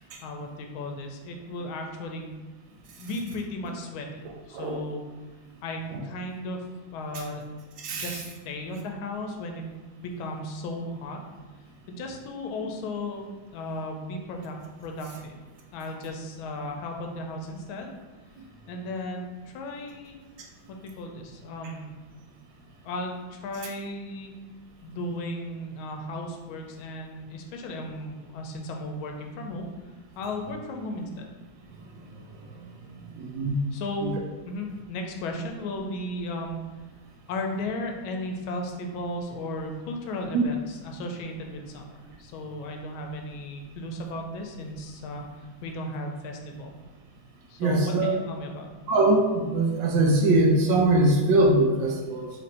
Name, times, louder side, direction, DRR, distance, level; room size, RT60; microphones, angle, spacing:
voice 1, 0.2-2.3 3.0-5.0 5.6-6.6 6.9-7.5 7.9-9.6 10.0-11.2 11.9-15.4 15.7-17.9 18.7-20.2 20.7-21.9 22.8-24.3 24.8-29.7 30.2-31.3 33.7-34.1 34.5-36.6 37.3-46.7 47.5-48.7, left 1 dB, 85° left, 3 dB, 1.4 m, -35 dB
voice 2, 7.8-8.2 31.7-31.8 32.4-32.5 32.9-33.6 40.3-40.4 47.6-48.2 48.9-52.3, right 2 dB, 75° right, 0 dB, 1.3 m, -22 dB
3.9 x 2.6 x 4.2 m, 1.3 s
omnidirectional pair, 2.2 m